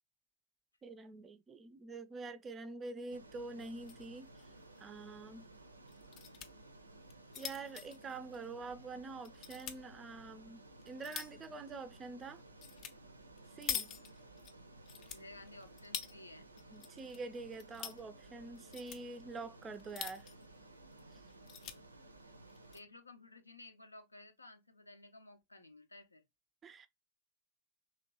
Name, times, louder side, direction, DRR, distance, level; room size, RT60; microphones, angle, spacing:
voice 1, 0.8-4.3 4.8-5.5 7.4-12.4 13.6-13.9 16.7-20.3 21.1-21.2 26.6-26.9, right 3 dB, 20° right, 0.4 m, -46 dB
Ocean, 3.1-22.8, right 2 dB, 80° right, 0.5 m, -57 dB
sound 1, 3.6-4.1 4.4-4.5 4.8-4.9 5.9-6.5 7.0-8.8 9.3-9.8 10.4-11.5 12.6-12.9 13.2-14.5 14.9-16.1 16.6-17.2 17.5-18.0 18.6-19.0 19.7-20.5 20.9-21.0 21.3-21.8 22.5-22.8, left 9 dB, 35° left, 0.4 m, -44 dB
voice 2, 15.1-16.5 22.7-26.2, left 2 dB, 80° left, 0.6 m, -55 dB
3.0 x 2.9 x 2.8 m
figure-of-eight pair, 90°, 0 cm